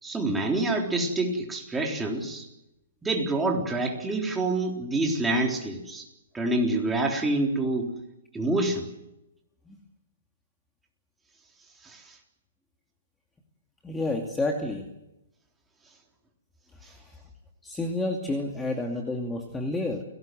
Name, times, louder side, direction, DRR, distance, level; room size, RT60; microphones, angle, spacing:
voice 1, 0.0-2.5 3.0-6.1 6.3-7.9 8.3-8.9 11.8-12.2 16.8-16.9, right 2 dB, 10° right, 0 dB, 3.9 m, -27 dB
voice 2, 13.8-14.9 16.9-17.2 17.6-20.0, left 2 dB, 10° left, 1 dB, 2.4 m, -30 dB
29.0 x 18.5 x 7.8 m, 0.91 s
hypercardioid pair, 150°, 0 cm